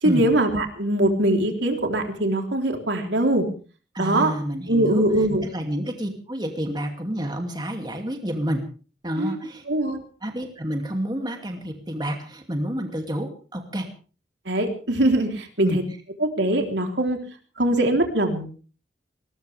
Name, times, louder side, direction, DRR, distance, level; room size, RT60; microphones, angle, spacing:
voice 1, 0.0-3.5 4.0-4.3 4.7-5.4 9.2-9.4 9.7-10.0 14.5-15.8 16.2-17.2 17.6-18.5, right 1 dB, 80° right, 4 dB, 3.6 m, -22 dB
voice 2, 3.9-8.6 9.0-9.6 10.2-13.9 15.6-15.8, equal, 25° right, 3 dB, 2.5 m, -29 dB
20.0 x 20.0 x 3.5 m, 0.38 s
head